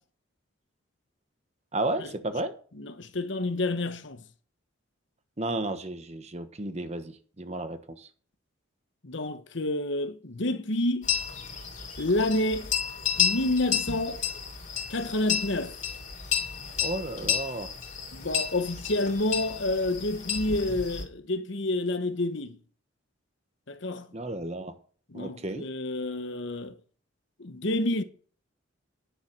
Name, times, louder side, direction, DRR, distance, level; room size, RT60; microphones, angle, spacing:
voice 1, 1.7-2.5 5.4-8.1 16.8-17.7 24.1-24.7 25.1-25.7, right 2 dB, 30° right, 1.2 m, -33 dB
voice 2, 2.8-4.2 9.0-11.1 12.0-12.7 13.2-14.2 14.9-15.7 18.1-22.6 23.7-24.1 25.1-26.8 27.4-28.0, left 2 dB, 60° left, 1.1 m, -29 dB
sound 1, 11.0-21.0, left 7 dB, 40° left, 3.0 m, -31 dB
10.5 x 7.4 x 6.2 m
head